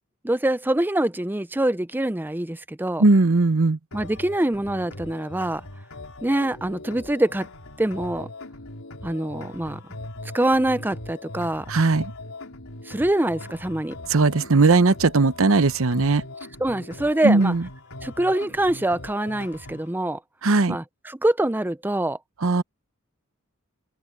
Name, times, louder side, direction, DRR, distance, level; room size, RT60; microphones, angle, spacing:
voice 1, 0.2-3.0 3.9-5.6 6.2-7.5 7.8-8.3 9.0-9.8 10.3-11.7 12.9-14.0 16.6-17.5 18.0-20.2 20.7-22.2, right 1 dB, 10° right, 0.5 m, -24 dB
voice 2, 3.0-3.8 11.7-12.1 14.1-16.2 17.2-17.6 20.4-20.8 22.4-22.6, right 3 dB, 70° right, 0.9 m, -18 dB
sound 1, 3.9-19.9, left 2 dB, 75° left, 4.6 m, -40 dB
open air
head